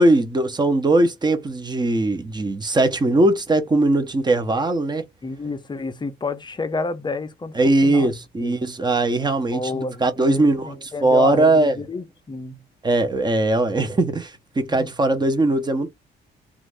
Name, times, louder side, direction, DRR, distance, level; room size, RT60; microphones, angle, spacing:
voice 1, 0.0-5.0 7.5-11.8 12.8-15.9, right 2 dB, 20° right, 0.8 m, -20 dB
voice 2, 5.2-8.1 8.4-8.5 9.5-12.6 14.7-14.9, left 3 dB, 20° left, 0.6 m, -30 dB
2.5 x 2.5 x 3.3 m
cardioid pair, 90°, 20 cm